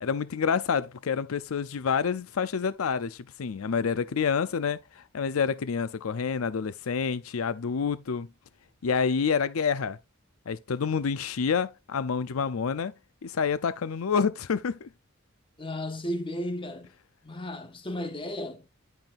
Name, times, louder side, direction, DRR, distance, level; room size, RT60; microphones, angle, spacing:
voice 1, 0.0-8.3 8.8-10.0 10.5-12.9 13.2-14.9, left 6 dB, 90° left, 0.5 m, -28 dB
voice 2, 15.6-16.9 17.2-18.8, left 1 dB, 25° left, 1.4 m, -34 dB
10.5 x 5.7 x 2.5 m
head